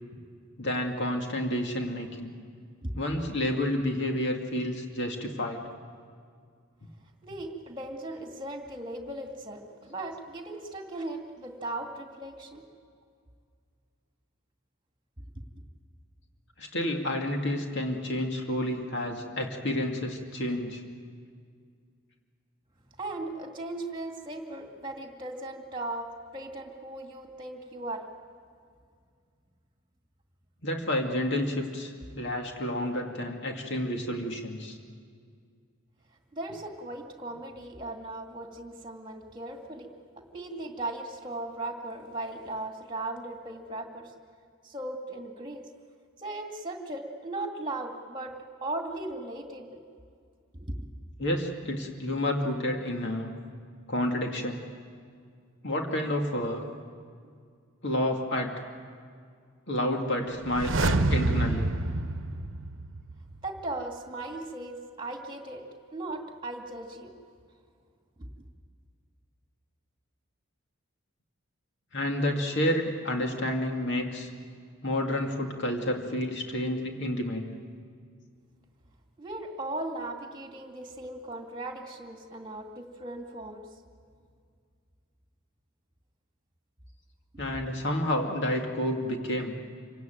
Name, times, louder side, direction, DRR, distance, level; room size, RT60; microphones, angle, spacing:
voice 1, 0.6-2.3 3.0-5.6 6.8-6.9 16.6-20.8 30.6-34.8 51.2-53.3 53.9-54.6 55.6-56.6 57.8-58.6 59.7-61.7 71.9-74.3 74.8-77.5 87.4-89.5, left 1 dB, 55° left, 2 dB, 2.3 m, -30 dB
voice 2, 7.2-12.6 23.0-28.1 36.3-39.9 40.3-44.1 44.6-45.7 46.2-48.3 48.6-49.8 50.5-50.8 63.4-65.6 65.9-67.1 68.2-68.3 79.2-83.7 87.3-87.6, right 2 dB, 20° right, 3 dB, 2.4 m, -37 dB
sound 1, 60.4-63.3 63.6-63.7, right 2 dB, 60° right, 1.0 m, -27 dB
27.0 x 17.0 x 9.2 m, 2.2 s
head